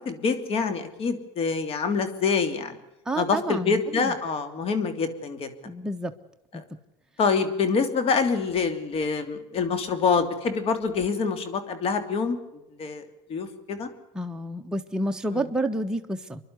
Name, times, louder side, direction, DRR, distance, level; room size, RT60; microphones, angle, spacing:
voice 1, 0.0-2.8 3.2-5.5 6.5-6.6 7.2-12.4 12.8-13.0 13.3-13.9 15.3-15.4, left 5 dB, 50° left, 9 dB, 3.1 m, -26 dB
voice 2, 3.1-4.1 5.6-6.1 6.5-6.6 14.1-16.4, right 1 dB, 5° right, 3 dB, 1.2 m, -29 dB
27.0 x 11.5 x 9.6 m, 0.94 s
supercardioid pair, 105°, 13 cm